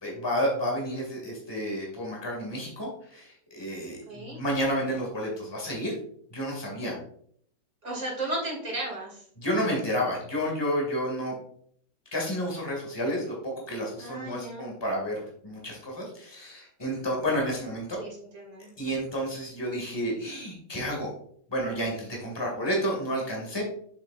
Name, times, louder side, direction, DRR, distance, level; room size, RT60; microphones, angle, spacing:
voice 1, 0.0-6.0 6.3-7.0 9.4-11.4 12.1-13.3 13.7-18.0 18.8-21.1 21.5-23.6, equal, 15° left, -2 dB, 2.2 m, -30 dB
voice 2, 4.1-4.4 7.8-9.3 14.0-14.7 17.9-18.7, right 1 dB, 40° right, -2 dB, 2.9 m, -35 dB
7.2 x 6.8 x 2.5 m, 0.62 s
omnidirectional pair, 1.9 m